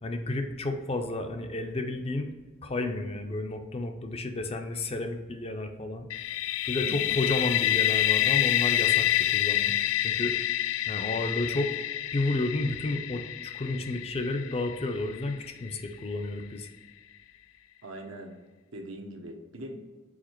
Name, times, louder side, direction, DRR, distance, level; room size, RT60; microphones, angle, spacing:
voice 1, 0.0-2.3 2.6-6.1 6.7-10.4 10.9-11.7 12.1-16.7, left 2 dB, 30° left, 6 dB, 0.5 m, -31 dB
sound 1, 6.1-15.8, left 13 dB, 90° left, 0.3 m, -28 dB
voice 2, 6.8-7.2 17.8-18.4 18.7-19.8, right 1 dB, 75° right, 3 dB, 0.9 m, -41 dB
4.9 x 4.6 x 4.4 m, 1.3 s
head